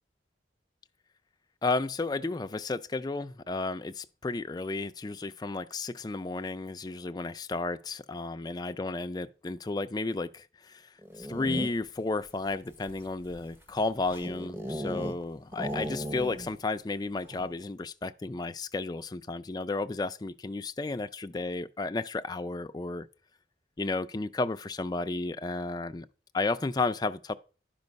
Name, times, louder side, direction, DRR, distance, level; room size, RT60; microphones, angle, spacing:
voice 1, 1.6-10.9 11.2-23.1 23.8-26.1 26.3-27.4, left 3 dB, 20° left, 0.4 m, -33 dB
sound 1, 11.0-12.0 12.7-15.2 15.5-16.6 16.9-17.0 17.3-17.6, equal, 15° right, 0.8 m, -37 dB
10.5 x 5.3 x 5.2 m
head